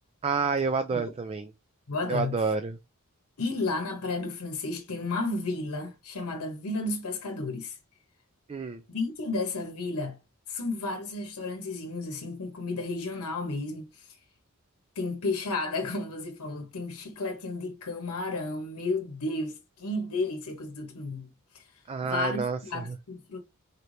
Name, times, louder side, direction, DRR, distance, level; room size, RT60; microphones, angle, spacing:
voice 1, 0.2-1.5 2.1-2.8 8.5-8.8 21.9-23.0, right 5 dB, 25° right, 0.3 m, -29 dB
voice 2, 1.9-2.5 3.4-7.8 8.9-10.2 10.5-14.1 15.0-21.3 21.5-21.6 22.0-23.4, left 3 dB, 85° left, 0.9 m, -32 dB
4.3 x 3.2 x 2.5 m
head